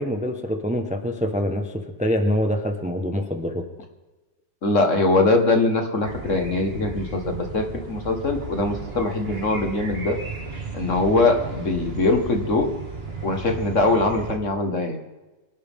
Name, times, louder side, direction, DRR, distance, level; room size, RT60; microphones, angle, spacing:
voice 1, 0.0-3.7, equal, 5° right, 5 dB, 1.0 m, -25 dB
voice 2, 4.6-10.2 10.7-12.7 13.2-15.0, left 2 dB, 45° left, 5 dB, 1.9 m, -22 dB
sound 1, 6.0-14.4, right 3 dB, 35° right, 2.0 m, -35 dB
24.0 x 11.5 x 3.7 m, 1.2 s
omnidirectional pair, 1.9 m